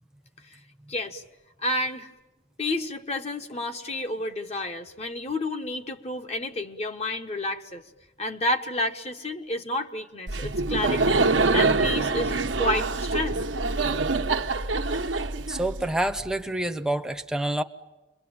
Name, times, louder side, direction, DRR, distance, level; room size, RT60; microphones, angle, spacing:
voice 1, 0.9-1.2 1.6-2.1 2.6-7.8 8.2-11.2 11.5-13.4, left 1 dB, 35° left, 1.4 m, -30 dB
Laughter, 10.3-16.1, right 3 dB, 90° right, 1.2 m, -25 dB
voice 2, 15.5-17.6, right 1 dB, 5° right, 1.0 m, -27 dB
29.0 x 23.0 x 8.8 m
head